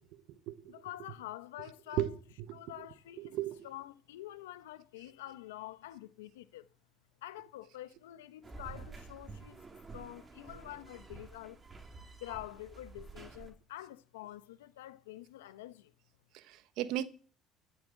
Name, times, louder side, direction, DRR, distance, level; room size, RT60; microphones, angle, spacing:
voice 1, 0.7-2.1 2.5-3.4 3.6-6.7 7.2-9.6 9.9-11.6 12.2-15.9, left 14 dB, 90° left, 0.9 m, -47 dB
voice 2, 3.2-3.6 16.3-17.0, right 13 dB, 70° right, 1.2 m, -35 dB
sound 1, 8.4-13.5, right 4 dB, 30° right, 3.6 m, -50 dB
15.5 x 7.7 x 7.7 m
hypercardioid pair, 70°, 0 cm